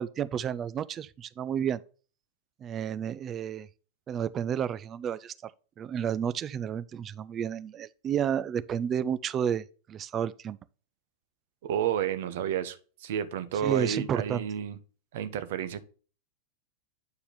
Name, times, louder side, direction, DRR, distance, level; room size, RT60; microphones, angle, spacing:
voice 1, 0.0-1.8 2.6-3.7 4.1-5.5 5.8-10.6 13.6-14.4, right 8 dB, 25° right, 0.4 m, -31 dB
voice 2, 11.6-14.8 15.1-15.8, right 8 dB, 55° right, 0.8 m, -31 dB
8.6 x 4.6 x 3.2 m
figure-of-eight pair, 90°, 0 cm